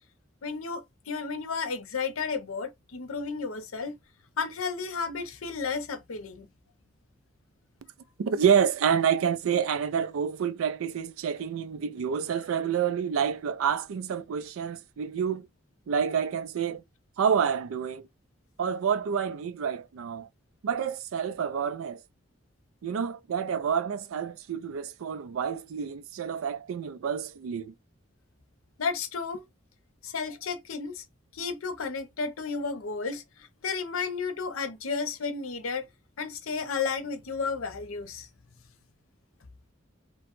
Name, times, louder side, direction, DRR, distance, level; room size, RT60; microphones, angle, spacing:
voice 1, 0.4-3.9 4.4-6.5 28.8-29.5 30.0-31.0 31.3-35.9 36.2-38.3, left 5 dB, 85° left, 0.6 m, -33 dB
voice 2, 8.2-15.5 15.9-16.8 17.2-18.1 18.6-20.3 20.6-22.0 22.8-27.7, right 7 dB, 80° right, 0.4 m, -28 dB
2.8 x 2.1 x 2.9 m
head